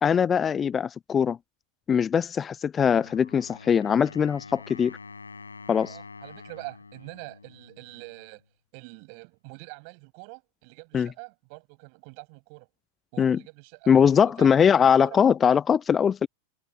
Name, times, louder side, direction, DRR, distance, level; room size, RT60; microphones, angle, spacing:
voice 1, 0.0-1.4 1.9-5.0 5.7-6.0 10.9-11.1 13.2-13.4 13.9-16.3, left 7 dB, 20° left, 0.3 m, -21 dB
Wind instrument woodwind instrument, 2.8-8.4, left 4 dB, 75° left, 6.5 m, -46 dB
voice 2, 5.8-8.4 8.7-12.7 13.1-14.7 15.0-15.4, right 40 dB or more, 45° right, 6.1 m, -44 dB
figure-of-eight pair, 90°, 0 cm